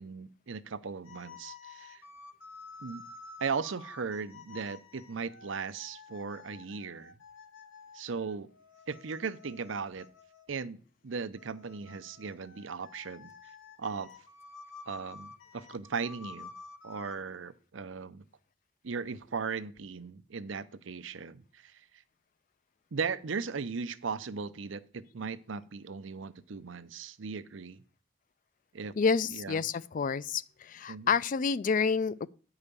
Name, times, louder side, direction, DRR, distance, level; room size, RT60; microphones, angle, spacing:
voice 1, 0.0-2.0 2.8-3.0 3.4-7.1 7.9-8.5 8.9-10.1 10.5-13.3 13.8-14.1 14.9-16.5 16.8-18.2 18.8-21.8 22.9-27.8 28.7-28.9 29.3-29.6 30.9-31.1, right 5 dB, 80° right, 0.7 m, -37 dB
sound 1, 1.0-10.6 11.4-17.2, left 4 dB, 85° left, 1.2 m, -51 dB
voice 2, 29.0-32.3, left 5 dB, 45° left, 0.3 m, -29 dB
9.9 x 4.9 x 6.8 m
head